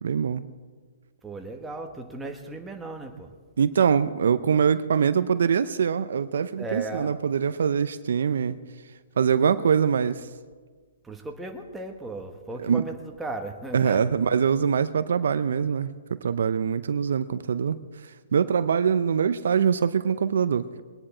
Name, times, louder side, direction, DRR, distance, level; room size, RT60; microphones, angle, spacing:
voice 1, 0.0-0.4 3.6-8.6 9.2-10.2 12.6-12.8 13.7-15.9 16.2-17.8 18.3-20.8, right 7 dB, 75° right, 13 dB, 0.6 m, -23 dB
voice 2, 1.2-3.3 6.6-7.1 11.0-14.0, right 2 dB, 5° right, 2 dB, 1.4 m, -36 dB
21.5 x 10.0 x 4.4 m, 1.5 s
hypercardioid pair, 140°, 0 cm